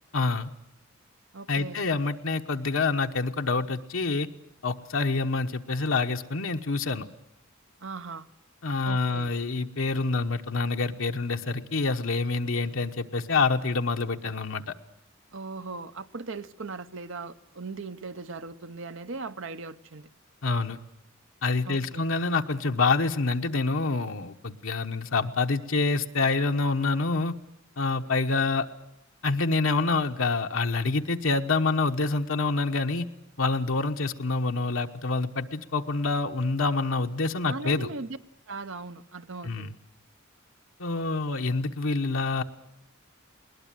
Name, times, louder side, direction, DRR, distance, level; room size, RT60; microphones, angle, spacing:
voice 1, 0.1-0.5 1.5-4.3 4.6-7.1 8.6-14.7 20.4-20.8 21.4-27.3 27.8-28.7 29.2-33.1 33.4-37.9 39.4-39.7 40.8-42.4, left 3 dB, 75° left, 4 dB, 1.1 m, -27 dB
voice 2, 1.3-1.8 7.8-8.3 8.8-9.3 15.3-20.1 21.6-22.1 37.5-38.2 38.5-39.8, right 3 dB, 70° right, 11 dB, 0.9 m, -38 dB
21.0 x 20.0 x 9.0 m, 0.82 s
head